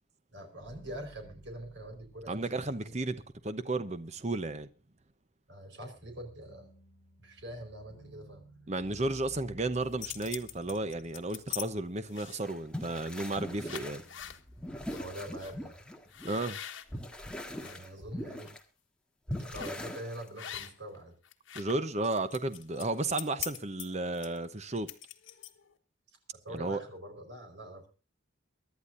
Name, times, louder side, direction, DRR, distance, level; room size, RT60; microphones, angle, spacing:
voice 1, 0.3-2.9 5.5-6.7 7.2-8.4 14.9-15.8 17.6-18.6 19.4-21.2 26.4-27.9, right 1 dB, 60° right, 4.7 m, -44 dB
sound 1, 0.6-3.9 6.0-12.5 12.9-14.4, equal, 25° left, 3.4 m, -55 dB
voice 2, 2.3-3.2 3.4-4.7 8.7-14.0 16.2-16.6 21.5-24.9 26.5-26.8, right 2 dB, 35° right, 0.9 m, -33 dB
sound 2, 9.7-11.7 12.1-12.6 13.2-13.3 13.6-14.4 14.9-15.0 15.4-15.5 16.1-17.8 18.2-18.5 19.5-19.9 20.4-21.0 21.2-25.7, left 11 dB, 75° left, 1.5 m, -43 dB
sound 3, 12.4-16.5 16.9-18.6 19.3-20.6, left 1 dB, 5° left, 1.7 m, -41 dB
24.0 x 11.5 x 2.6 m
head